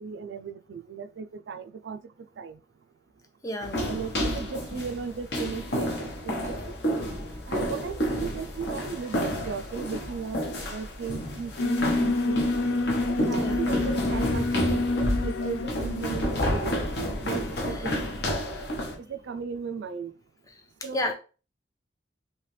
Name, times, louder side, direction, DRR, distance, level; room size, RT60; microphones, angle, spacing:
voice 1, 0.0-2.0 2.4-2.6 3.8-6.6 7.5-10.4 10.7-12.5 13.1-16.7 17.2-17.9 19.1-20.1 20.8-21.1, right 5 dB, 75° right, 0.3 m, -36 dB
voice 2, 3.4-3.9 13.3-13.7 17.7-18.0 20.5-21.1, left 1 dB, 20° left, 0.5 m, -34 dB
sound 1, 3.6-18.9, equal, 65° left, 0.9 m, -30 dB
Alarm, 11.6-18.7, left 2 dB, 90° left, 0.4 m, -29 dB
3.2 x 2.9 x 3.2 m
head